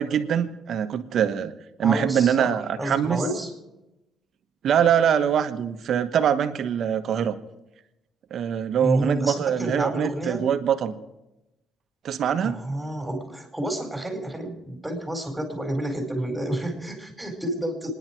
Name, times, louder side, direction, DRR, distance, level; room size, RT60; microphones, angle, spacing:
voice 1, 0.0-1.5 1.8-3.3 4.6-7.4 8.3-10.9 12.0-12.6, right 8 dB, 65° right, 8 dB, 1.3 m, -23 dB
voice 2, 1.8-3.5 8.8-10.5 12.4-17.9, right 1 dB, 5° right, 3 dB, 4.6 m, -30 dB
28.0 x 10.5 x 4.6 m, 0.95 s
cardioid pair, 90°, 0 cm